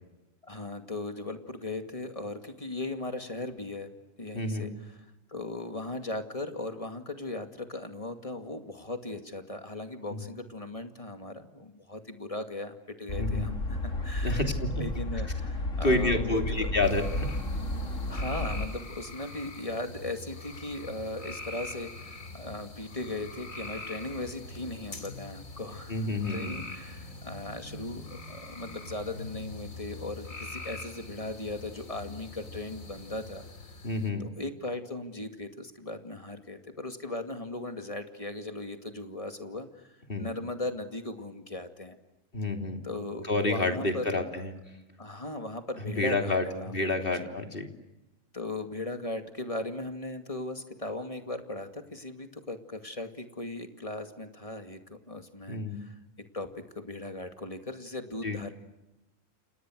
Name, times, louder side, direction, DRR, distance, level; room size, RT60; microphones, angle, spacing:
voice 1, 0.4-3.9 4.2-14.4 14.7-16.7 18.1-33.4 34.2-39.9 40.2-42.0 42.8-44.2 45.0-47.3 48.3-56.0 56.3-58.5, left 2 dB, 25° left, 6 dB, 2.4 m, -38 dB
voice 2, 4.3-4.7 10.1-10.3 13.2-13.5 14.2-14.9 15.8-17.4 25.9-26.6 33.8-34.3 40.1-40.3 42.3-42.8 43.3-44.5 46.0-47.7 55.5-55.8 58.2-58.4, left 2 dB, 45° left, 4 dB, 3.3 m, -29 dB
sound 1, 13.1-18.7, left 1 dB, 70° left, 3.3 m, -32 dB
sound 2, 16.8-34.1, left 2 dB, 85° left, 3.3 m, -43 dB
29.5 x 28.0 x 6.4 m, 0.99 s
omnidirectional pair, 1.4 m